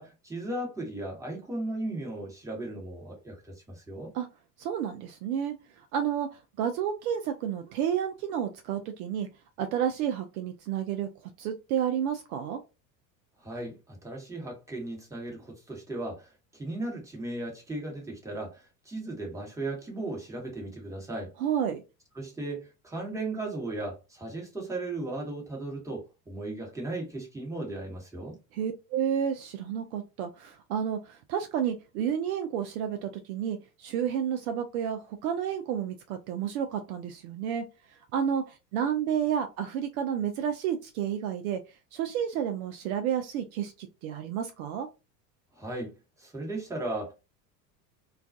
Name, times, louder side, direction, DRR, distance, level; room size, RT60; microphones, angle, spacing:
voice 1, 0.0-4.1 13.4-21.3 22.1-28.4 45.5-45.9 46.2-47.1, right 2 dB, 5° right, 1.1 m, -36 dB
voice 2, 4.6-5.6 5.9-9.3 9.6-11.1 11.4-12.6 21.4-21.8 28.5-37.6 38.1-41.6 41.9-44.9, right 9 dB, 60° right, 0.5 m, -31 dB
2.3 x 2.3 x 2.4 m
hypercardioid pair, 75°, 49 cm